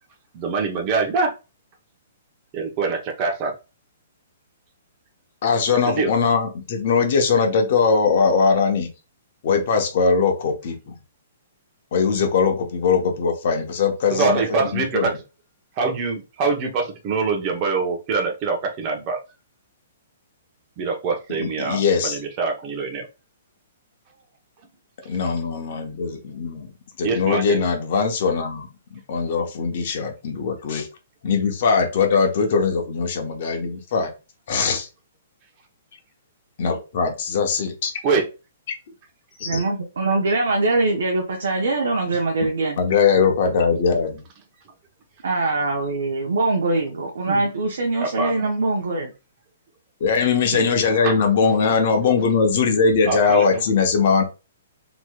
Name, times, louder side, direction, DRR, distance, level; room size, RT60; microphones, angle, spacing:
voice 1, 0.3-1.3 2.5-3.5 5.9-6.1 14.1-15.2 15.8-19.2 20.8-23.1 27.0-27.6 38.0-38.3 47.3-47.4 48.0-48.5 51.0-51.1 53.1-53.6, right 4 dB, 35° right, 3 dB, 0.9 m, -24 dB
voice 2, 5.4-8.9 9.4-10.8 11.9-15.1 21.4-22.2 25.0-26.7 27.0-28.7 29.1-30.9 31.2-34.1 34.5-34.9 36.6-37.9 39.4-39.6 42.8-44.2 50.0-54.2, left 5 dB, 55° left, 3 dB, 0.9 m, -20 dB
voice 3, 39.4-42.8 45.2-49.1 50.5-50.7, right 2 dB, 80° right, 1 dB, 0.7 m, -23 dB
3.0 x 2.9 x 2.3 m, 0.29 s
hypercardioid pair, 145°, 0 cm